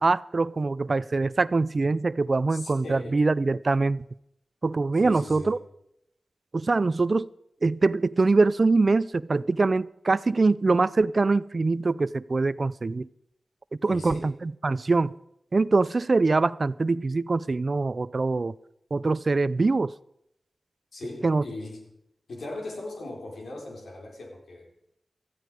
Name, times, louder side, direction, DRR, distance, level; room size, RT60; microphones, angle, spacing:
voice 1, 0.0-4.0 4.6-5.6 6.5-7.3 7.6-13.1 13.8-15.1 15.5-18.5 18.9-19.9 21.2-21.4, right 3 dB, 55° right, 0.5 m, -23 dB
voice 2, 2.5-3.2 5.0-5.6 13.8-14.4 20.9-21.9 22.3-24.7, left 2 dB, 85° left, 4.4 m, -39 dB
17.5 x 14.0 x 5.0 m
cardioid pair, 50°, 0 cm